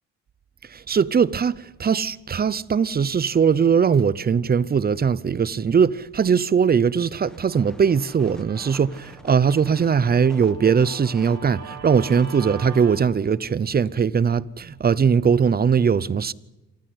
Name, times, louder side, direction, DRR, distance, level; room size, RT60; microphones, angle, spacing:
voice 1, 0.7-16.3, right 6 dB, 30° right, 0.7 m, -20 dB
sound 1, 7.2-13.2, equal, ahead, 1.5 m, -48 dB
Guitar, 7.5-13.0, right 5 dB, 60° right, 2.6 m, -43 dB
27.0 x 14.0 x 8.0 m
cardioid pair, 90°, 30 cm